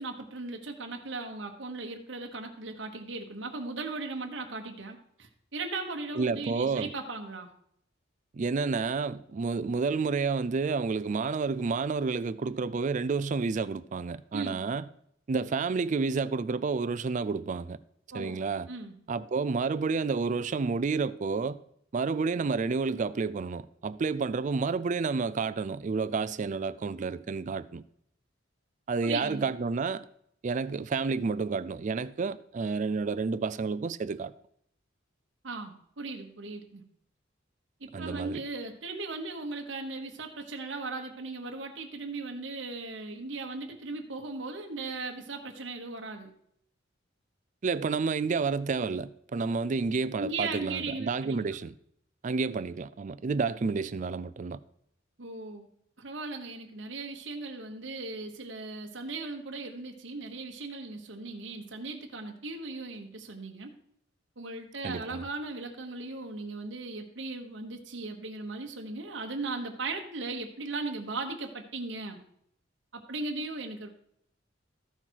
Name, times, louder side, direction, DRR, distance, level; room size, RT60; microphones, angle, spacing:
voice 1, 0.0-7.5 14.3-14.6 18.1-18.4 18.7-19.0 29.0-29.5 35.4-36.8 37.8-46.3 50.2-51.4 55.2-55.7 56.0-63.7 64.4-72.2 72.9-73.9, right 3 dB, 65° right, 1.2 m, -37 dB
voice 2, 6.2-6.9 8.3-14.8 15.3-17.8 18.1-18.7 19.1-21.6 21.9-27.8 28.9-30.1 30.4-34.3 37.9-38.4 47.6-51.7 52.2-54.6 64.8-65.3, right 4 dB, 40° right, 0.4 m, -30 dB
14.0 x 5.7 x 4.6 m
head